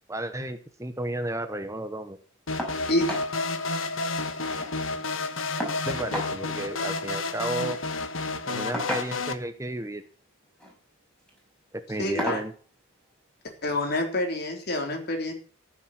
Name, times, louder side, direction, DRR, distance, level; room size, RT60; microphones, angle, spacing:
voice 1, 0.1-2.2 5.8-7.8 8.5-10.0 11.7-12.5, right 1 dB, 15° right, 10 dB, 1.0 m, -33 dB
sound 1, 2.5-9.3, left 3 dB, 80° left, 1.6 m, -31 dB
sound 2, 2.6-2.8 3.1-3.3 3.7-3.8 4.0-4.7 5.6-6.3 7.6-7.8 8.7-9.4 10.4-10.7 11.2-11.4 12.2-12.5 13.8-13.9 14.4-14.5, equal, 5° left, 5.5 m, -34 dB
voice 2, 12.0-12.4 13.6-15.3, left 1 dB, 55° left, 3 dB, 3.9 m, -27 dB
14.5 x 7.5 x 7.5 m, 0.42 s
head